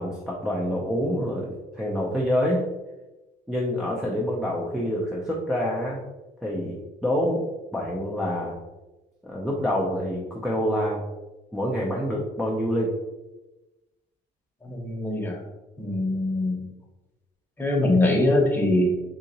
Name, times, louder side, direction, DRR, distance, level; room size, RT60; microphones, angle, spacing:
voice 1, 0.0-2.6 3.5-6.0 6.4-8.6 9.2-11.0 11.5-12.9, equal, 5° right, -5 dB, 0.5 m, -27 dB
voice 2, 14.6-15.4 15.8-16.6 17.6-18.9, left 2 dB, 10° left, -1 dB, 0.9 m, -23 dB
3.7 x 2.8 x 2.8 m, 1.0 s
cardioid pair, 110°, 17 cm